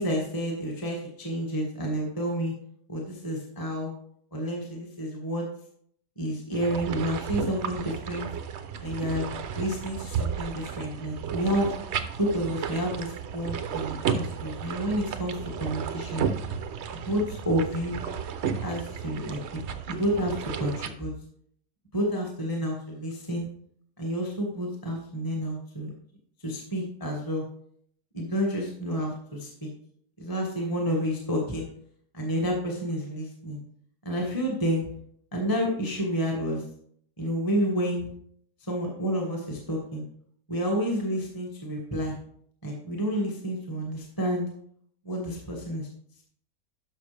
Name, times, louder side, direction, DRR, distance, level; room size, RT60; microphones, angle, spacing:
voice 1, 0.0-2.5 2.9-3.9 4.3-5.5 6.2-8.3 8.8-9.3 9.5-11.7 12.2-16.3 16.9-18.0 18.6-21.1 21.9-23.5 24.0-25.9 26.4-27.4 28.1-29.7 30.2-31.7 32.1-33.6 34.0-34.9 35.3-36.6 37.2-38.1 38.6-40.0 40.5-42.2 42.6-44.5 45.0-45.9, equal, 15° left, -1 dB, 1.5 m, -30 dB
sound 1, 6.5-20.9, right 7 dB, 65° right, 0.6 m, -33 dB
12.0 x 5.9 x 3.4 m, 0.64 s
omnidirectional pair, 1.9 m